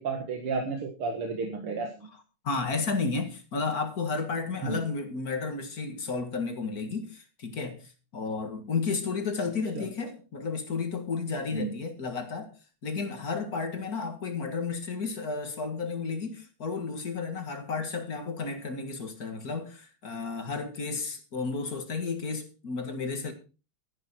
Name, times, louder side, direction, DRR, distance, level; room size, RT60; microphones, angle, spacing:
voice 1, 0.0-2.1 4.6-4.8 9.8-9.9 11.5-11.7, right 4 dB, 90° right, 2.7 m, -32 dB
voice 2, 2.1-12.5 12.8-23.3, left 4 dB, 45° left, 2.2 m, -32 dB
13.5 x 11.0 x 4.4 m
omnidirectional pair, 2.3 m